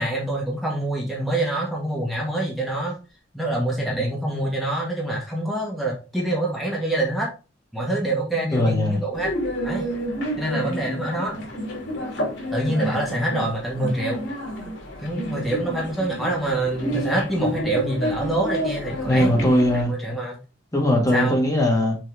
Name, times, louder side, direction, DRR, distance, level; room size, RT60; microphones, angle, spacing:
voice 1, 0.0-2.9 3.3-7.3 7.7-9.3 9.6-9.9 10.4-11.3 12.5-14.2 15.0-19.3 19.7-20.4 21.1-21.4, right 1 dB, ahead, 1.7 m, -25 dB
voice 2, 8.5-9.0 19.1-19.9 20.7-22.0, left 1 dB, 20° left, 1.9 m, -20 dB
sound 1, 9.1-19.8, equal, 75° left, 2.5 m, -30 dB
6.2 x 4.4 x 3.4 m
head